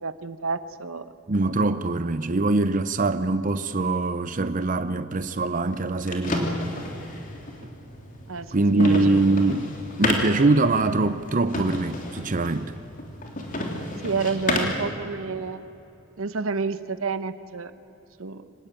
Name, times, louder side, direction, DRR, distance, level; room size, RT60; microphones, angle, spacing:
voice 1, 0.0-1.1 8.3-9.1 14.0-15.6 16.2-17.7 18.2-18.4, right 4 dB, 80° right, 1.0 m, -29 dB
voice 2, 1.3-6.5 8.5-9.7 10.0-12.7, right 2 dB, 40° right, 0.7 m, -23 dB
sound 1, 5.7-14.9, left 2 dB, 40° left, 3.2 m, -31 dB
25.0 x 19.0 x 9.0 m
head